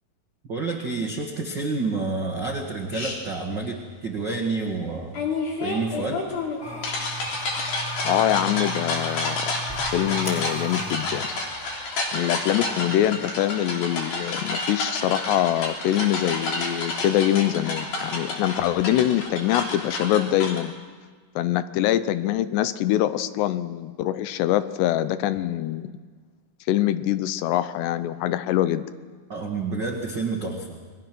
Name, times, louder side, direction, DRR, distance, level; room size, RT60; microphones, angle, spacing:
voice 1, 0.5-5.1 5.6-6.3 29.3-30.8, right 3 dB, 60° right, 1 dB, 1.1 m, -29 dB
sound 1, 2.9-3.2 5.1-20.6, left 2 dB, 60° left, 4.8 m, -30 dB
sound 2, 6.6-13.2, equal, 10° left, 4.3 m, -36 dB
voice 2, 8.0-9.4 9.9-11.3 12.1-20.7 21.4-25.9 26.7-28.8, left 12 dB, 80° left, 13 dB, 2.9 m, -24 dB
29.0 x 21.0 x 6.1 m, 1.5 s
omnidirectional pair, 5.0 m